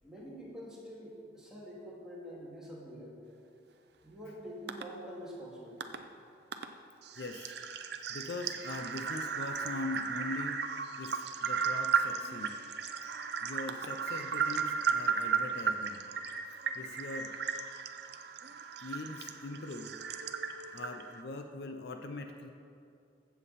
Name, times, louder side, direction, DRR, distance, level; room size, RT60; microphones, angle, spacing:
voice 1, 0.0-3.1 4.0-5.9 8.2-8.3, equal, 5° right, -7 dB, 2.4 m, -46 dB
sound 1, 4.7-4.8 5.8-6.0 6.5-6.7 7.0-21.2, right 6 dB, 65° right, 0.6 m, -35 dB
voice 2, 7.2-7.6 8.1-12.5 13.4-16.0 16.5-17.3 18.8-20.0 20.7-22.5, left 2 dB, 60° left, 5 dB, 0.6 m, -42 dB
14.5 x 7.1 x 4.2 m, 2.5 s
head